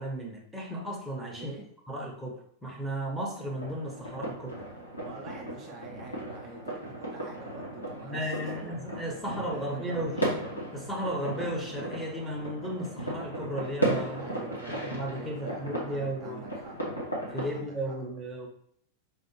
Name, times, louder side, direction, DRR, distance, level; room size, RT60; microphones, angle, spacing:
voice 1, 0.0-1.5 1.9-4.6 8.0-10.3 10.7-14.3 14.7-16.4 17.3-18.5, right 1 dB, 5° right, -2 dB, 0.9 m, -35 dB
voice 2, 1.3-1.7 5.0-8.7 9.5-10.2 14.2-16.8 17.4-18.2, right 3 dB, 35° right, 0 dB, 0.7 m, -46 dB
sound 1, 3.4-17.4, right 1 dB, 85° left, 1.1 m, -36 dB
4.7 x 2.4 x 3.0 m, 0.67 s
figure-of-eight pair, 90°, 0 cm